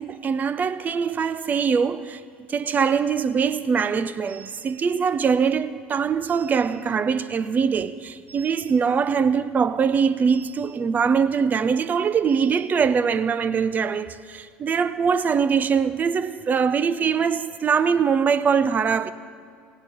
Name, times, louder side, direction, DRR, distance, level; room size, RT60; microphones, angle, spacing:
voice 1, 0.0-2.2 2.5-19.1, right 6 dB, 30° right, 14 dB, 0.8 m, -22 dB
18.0 x 17.0 x 3.8 m, 2.2 s
figure-of-eight pair, 65°, 5 cm